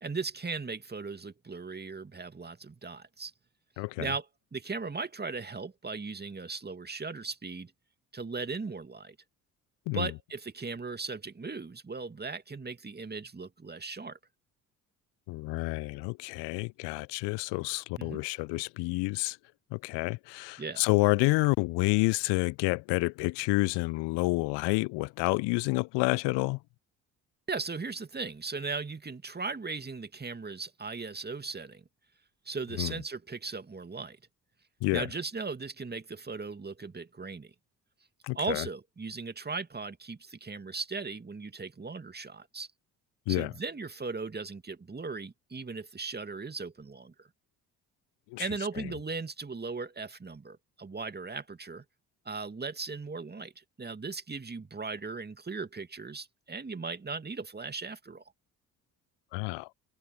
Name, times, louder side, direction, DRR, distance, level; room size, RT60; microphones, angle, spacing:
voice 1, 0.0-3.3 4.0-4.3 4.5-7.7 8.1-9.2 9.9-14.2 18.0-18.2 20.6-20.9 27.5-31.8 32.5-34.2 34.9-37.5 38.3-42.7 43.3-47.3 48.4-51.8 52.3-58.2, right 4 dB, 20° right, 2.4 m, -38 dB
voice 2, 3.8-4.1 9.9-10.1 15.3-19.4 19.7-26.6 32.8-32.9 34.8-35.1 38.2-38.7 43.3-43.5 48.3-48.5 59.3-59.7, left 26 dB, 60° left, 0.9 m, -29 dB
figure-of-eight pair, 50°, 48 cm